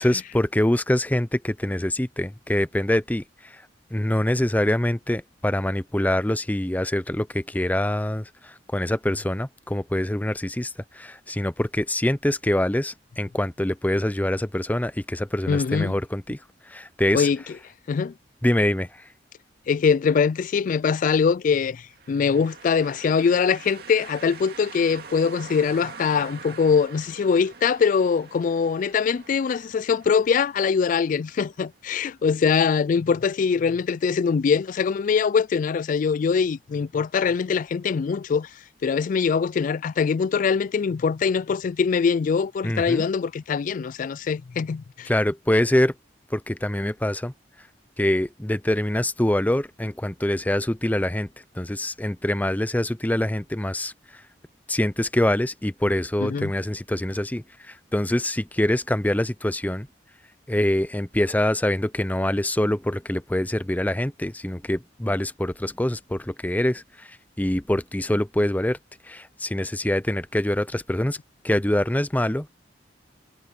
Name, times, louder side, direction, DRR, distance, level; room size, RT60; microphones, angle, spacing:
voice 1, 0.0-3.2 3.9-16.4 16.7-17.3 18.4-18.9 42.6-43.0 45.1-45.9 46.3-47.3 48.0-51.3 51.6-53.9 54.7-59.9 60.5-67.1 67.4-68.8 69.1-71.2 71.4-72.5, left 1 dB, 10° left, 0.6 m, -24 dB
voice 2, 15.5-16.0 17.1-17.4 17.9-18.1 19.7-38.5 38.8-45.1 56.2-56.5, left 6 dB, 45° left, 0.3 m, -23 dB
sound 1, 21.9-31.7, right 5 dB, 60° right, 2.1 m, -44 dB
head